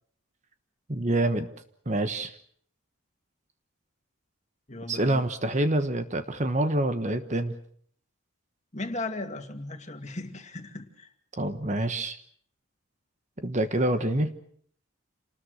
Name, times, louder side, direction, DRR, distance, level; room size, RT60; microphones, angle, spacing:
voice 1, 0.9-1.5 1.9-2.3 4.9-7.5 11.4-12.2 13.4-14.3, right 1 dB, 35° right, 9 dB, 1.2 m, -26 dB
voice 2, 4.7-5.3 8.7-11.1, left 2 dB, 35° left, 5 dB, 2.3 m, -36 dB
28.0 x 20.0 x 6.4 m, 0.63 s
head